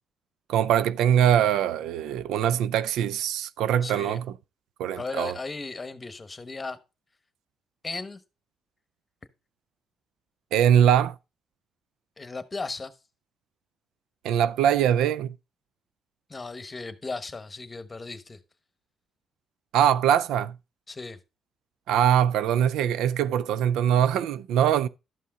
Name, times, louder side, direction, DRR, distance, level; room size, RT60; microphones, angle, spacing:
voice 1, 0.5-4.3 4.8-5.4 10.5-11.2 14.2-15.3 19.7-20.6 21.9-24.9, right 9 dB, 85° right, 0.4 m, -22 dB
voice 2, 3.8-4.2 5.0-6.8 7.8-8.2 12.2-12.9 16.3-18.4 20.9-21.2, left 3 dB, 25° left, 1.1 m, -36 dB
12.0 x 5.6 x 3.7 m
cardioid pair, 90°, 0 cm